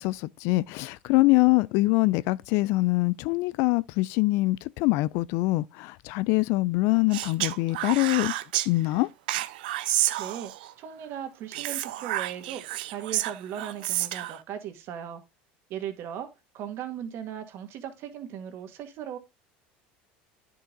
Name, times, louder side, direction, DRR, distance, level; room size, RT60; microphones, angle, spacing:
voice 1, 0.0-8.3 8.7-9.1, left 21 dB, 65° left, 0.4 m, -24 dB
Speech, 7.1-8.7 9.3-10.7 11.5-14.4, right 15 dB, 85° right, 0.6 m, -30 dB
voice 2, 9.9-10.5 10.8-15.2 15.7-16.3 16.5-19.2, right 9 dB, 55° right, 1.8 m, -38 dB
10.0 x 5.6 x 3.8 m
supercardioid pair, 100°, 5 cm